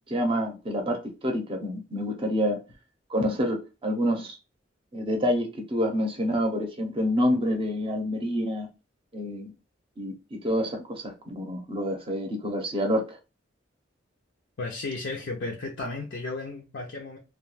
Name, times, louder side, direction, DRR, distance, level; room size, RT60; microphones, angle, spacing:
voice 1, 0.1-2.6 3.1-4.4 4.9-8.7 9.1-9.5 10.0-13.1, equal, 30° right, 0.6 m, -27 dB
voice 2, 14.6-17.2, left 3 dB, 65° left, 0.5 m, -34 dB
2.3 x 2.2 x 3.1 m
head